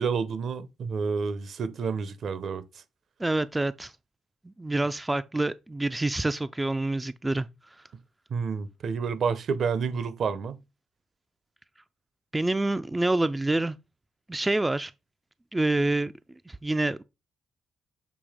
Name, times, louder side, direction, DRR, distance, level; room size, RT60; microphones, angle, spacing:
voice 1, 0.0-2.6 8.3-10.6, right 5 dB, 60° right, 0.7 m, -29 dB
voice 2, 3.2-3.9 4.4-7.5 12.3-13.8 14.3-14.9 15.5-16.1 16.5-17.0, right 2 dB, 15° right, 0.3 m, -27 dB
7.0 x 2.8 x 5.0 m
cardioid pair, 90°, 0 cm